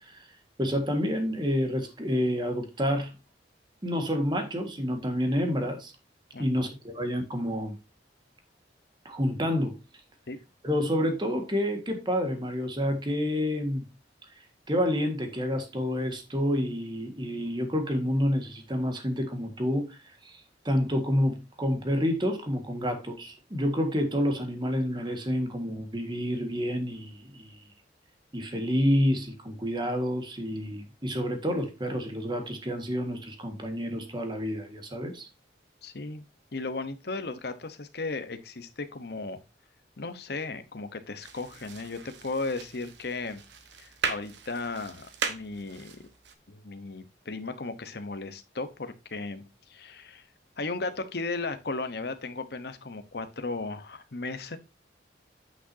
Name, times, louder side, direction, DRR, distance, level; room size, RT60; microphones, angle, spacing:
voice 1, 0.6-3.1 3.8-5.9 6.4-7.7 9.0-9.8 10.6-13.8 14.7-27.6 28.3-35.3, equal, 25° right, 1.6 m, -29 dB
voice 2, 6.3-6.7 10.3-10.4 35.8-36.3 36.5-39.4 40.0-43.4 43.8-46.0 46.5-50.2 50.6-54.6, left 3 dB, 60° left, 0.9 m, -36 dB
sound 1, 41.2-46.3, right 5 dB, 75° right, 1.2 m, -38 dB
9.1 x 6.1 x 2.7 m
head